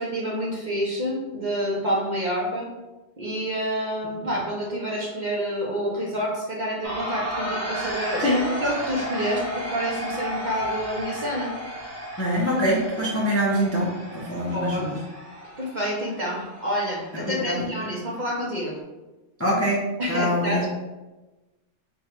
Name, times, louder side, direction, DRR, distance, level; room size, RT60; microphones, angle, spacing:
voice 1, 0.0-2.7 3.2-11.5 14.4-14.8 15.6-18.7 20.0-20.7, equal, 45° right, -3 dB, 0.7 m, -28 dB
sound 1, 6.8-18.8, right 1 dB, 15° right, 0.8 m, -34 dB
voice 2, 12.2-15.0 17.1-17.7 19.4-19.8 20.1-20.7, equal, 20° left, -5 dB, 0.4 m, -24 dB
3.5 x 2.3 x 4.4 m, 1.1 s
omnidirectional pair, 1.3 m